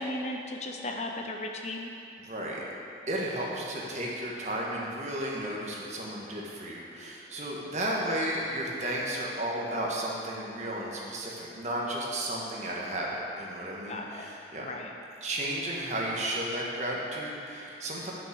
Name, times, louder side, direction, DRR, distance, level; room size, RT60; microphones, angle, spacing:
voice 1, 0.0-1.9 13.9-14.3 14.6-14.9, left 1 dB, 35° left, 2 dB, 0.6 m, -35 dB
voice 2, 2.2-2.6 3.1-14.7 15.2-18.1, right 1 dB, 40° right, -3 dB, 1.4 m, -33 dB
9.8 x 5.9 x 6.4 m, 2.7 s
head